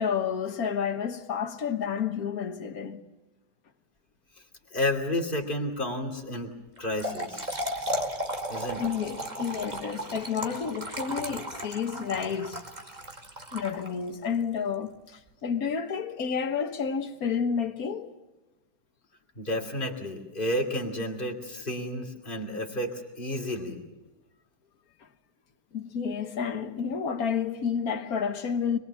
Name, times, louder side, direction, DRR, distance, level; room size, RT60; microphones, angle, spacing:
voice 1, 0.0-3.0 8.8-12.6 13.5-18.1 25.7-28.8, left 6 dB, 60° left, 1.8 m, -30 dB
voice 2, 4.7-6.5 6.8-7.6 8.5-8.8 19.4-23.8, left 1 dB, 30° left, 3.0 m, -31 dB
Trickle dribble / Fill (with liquid), 6.8-14.2, equal, 25° right, 2.3 m, -35 dB
24.5 x 22.5 x 7.2 m
omnidirectional pair, 1.8 m